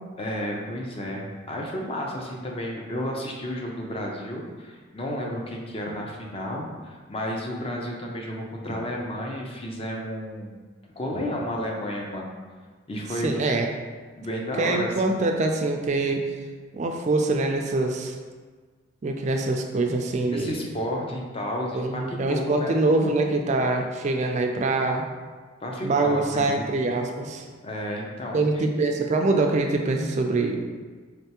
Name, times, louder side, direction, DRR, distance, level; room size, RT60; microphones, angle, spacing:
voice 1, 0.2-10.6 11.0-12.3 12.9-13.3 14.1-14.9 20.3-22.8 25.6-26.6 27.6-28.6, equal, 30° left, -1 dB, 0.5 m, -32 dB
voice 2, 13.2-13.7 14.6-16.2 16.7-18.2 19.0-20.7 21.7-25.0 25.8-27.4 28.3-30.6, right 2 dB, 35° right, 3 dB, 0.3 m, -24 dB
3.8 x 3.4 x 2.9 m, 1.5 s
head